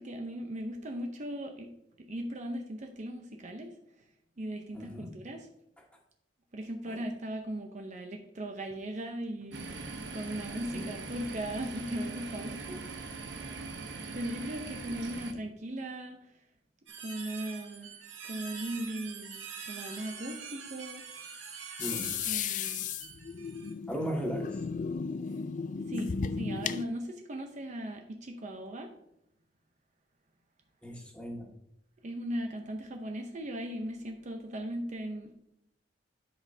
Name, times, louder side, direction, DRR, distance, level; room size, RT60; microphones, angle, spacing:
voice 1, 0.0-1.7 2.0-4.0 4.4-5.5 6.5-12.9 14.1-16.4 17.0-18.0 18.2-19.4 19.7-21.0 22.2-22.8 25.9-28.9 32.0-35.3, right 1 dB, 40° right, 4 dB, 0.7 m, -38 dB
voice 2, 4.7-5.1 6.9-7.0 10.7-10.9 21.8-22.2 23.9-24.6 30.8-31.5, equal, 5° left, -2 dB, 1.7 m, -36 dB
sound 1, 9.5-15.3, right 3 dB, 65° right, 1.0 m, -41 dB
sound 2, 16.9-23.7, right 6 dB, 85° right, 1.6 m, -45 dB
sound 3, 21.8-26.9, left 6 dB, 45° left, 0.3 m, -35 dB
12.0 x 5.2 x 2.7 m, 0.79 s
head